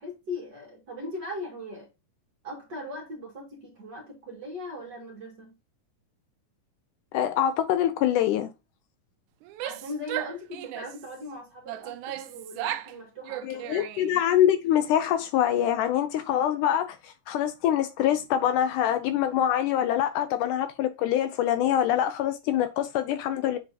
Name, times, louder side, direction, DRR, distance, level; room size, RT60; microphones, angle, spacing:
voice 1, 0.0-1.9 2.4-5.5 9.6-13.9, left 1 dB, 35° right, 2.3 m, -39 dB
voice 2, 7.1-8.5 13.7-23.6, left 10 dB, 80° left, 2.0 m, -25 dB
Female speech woman speaking / Yell, 9.4-11.1 11.7-13.0 13.2-14.2, right 13 dB, 80° right, 1.9 m, -36 dB
7.9 x 4.2 x 2.8 m
omnidirectional pair, 3.8 m